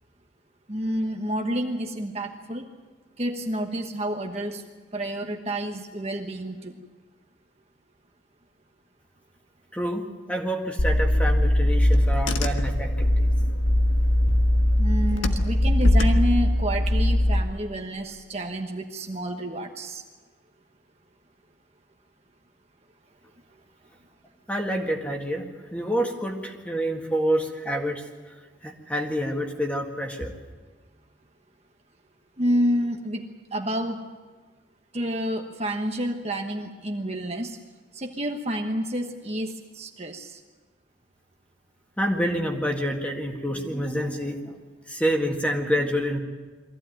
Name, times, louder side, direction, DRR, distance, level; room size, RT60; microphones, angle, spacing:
voice 1, 0.7-2.6 3.2-4.6 4.9-6.7 14.8-20.0 32.4-33.2 33.5-34.0 34.9-37.6 38.0-40.3, equal, 30° right, 3 dB, 1.2 m, -29 dB
voice 2, 9.7-13.3 24.5-28.0 28.6-30.3 42.0-44.5 44.9-46.2, equal, 5° left, 2 dB, 1.8 m, -28 dB
Car / Engine, 10.8-17.4, left 1 dB, 80° left, 1.4 m, -21 dB
23.0 x 15.0 x 9.1 m, 1.4 s
head